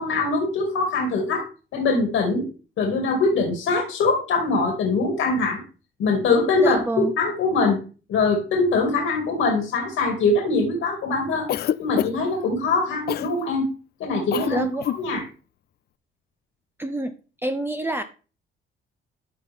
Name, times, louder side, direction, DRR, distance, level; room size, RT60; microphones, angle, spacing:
voice 1, 0.0-1.5 1.7-2.5 2.8-5.6 6.0-7.8 8.1-11.5 11.8-13.7 14.0-14.7 15.0-15.2, left 3 dB, 80° left, 2 dB, 2.3 m, -22 dB
voice 2, 6.6-7.1 14.5-14.9 16.8-17.1 17.4-18.0, right 1 dB, 10° right, 7 dB, 0.7 m, -26 dB
Cough, 11.5-12.4 13.1-13.3 14.3-14.5 14.8-15.0, left 11 dB, 55° left, 0.4 m, -26 dB
13.0 x 4.3 x 3.5 m, 0.35 s
cardioid pair, 90°, 20 cm